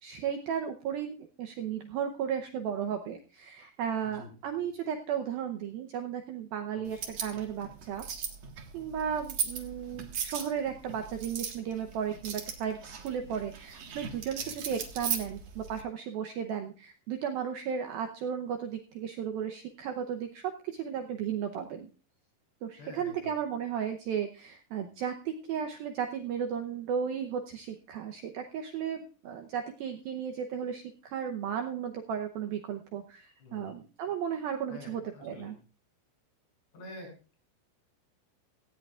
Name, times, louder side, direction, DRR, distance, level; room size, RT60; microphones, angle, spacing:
voice 1, 0.0-8.0 8.7-21.9 22.6-35.6, right 8 dB, 85° right, 4 dB, 2.0 m, -35 dB
voice 2, 6.7-7.1 14.4-14.6 22.8-23.3 33.4-33.7 34.7-35.5 36.7-37.1, left 2 dB, 60° left, 1 dB, 8.6 m, -47 dB
sound 1, 6.9-15.8, right 7 dB, 60° right, 1.7 m, -38 dB
17.5 x 15.5 x 2.4 m, 0.36 s
omnidirectional pair, 5.5 m